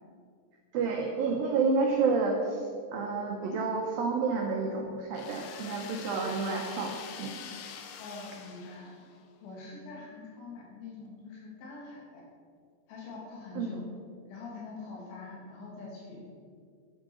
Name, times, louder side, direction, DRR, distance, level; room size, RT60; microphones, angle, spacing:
voice 1, 0.7-6.9 7.2-7.4 13.6-13.7, right 4 dB, 85° right, 1 dB, 2.0 m, -29 dB
sound 1, 5.1-9.2, left 7 dB, 90° left, 3.5 m, -45 dB
voice 2, 8.0-9.0 9.4-12.3 12.9-13.8 14.3-16.4, left 3 dB, 75° left, -3 dB, 4.9 m, -44 dB
11.5 x 7.6 x 6.3 m, 2.2 s
omnidirectional pair, 5.5 m